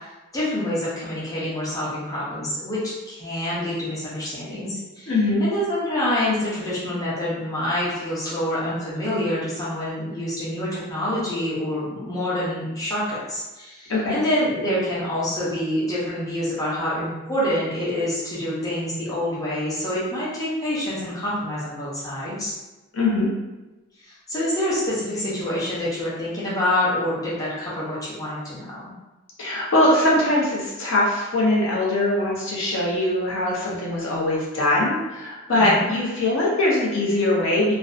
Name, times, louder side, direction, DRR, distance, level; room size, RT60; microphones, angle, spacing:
voice 1, 0.3-5.1 5.4-22.5 24.0-28.8 35.5-35.9, left 1 dB, 15° left, -9 dB, 0.6 m, -26 dB
voice 2, 5.1-5.4 13.9-14.2 22.9-23.3 29.4-37.8, left 1 dB, 65° left, -5 dB, 0.6 m, -21 dB
2.5 x 2.1 x 2.4 m, 1.1 s
head